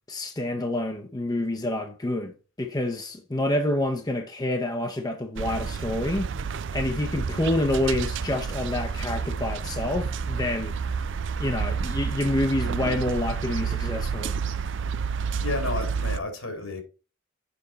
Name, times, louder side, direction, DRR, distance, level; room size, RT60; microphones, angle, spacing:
voice 1, 0.1-2.3 2.6-6.3 6.7-10.7 11.4-14.3, left 1 dB, 20° left, 0.7 m, -27 dB
sound 1, 5.4-16.2, right 6 dB, 55° right, 0.4 m, -30 dB
voice 2, 15.4-16.8, left 3 dB, 75° left, 2.7 m, -31 dB
7.0 x 5.8 x 4.0 m
head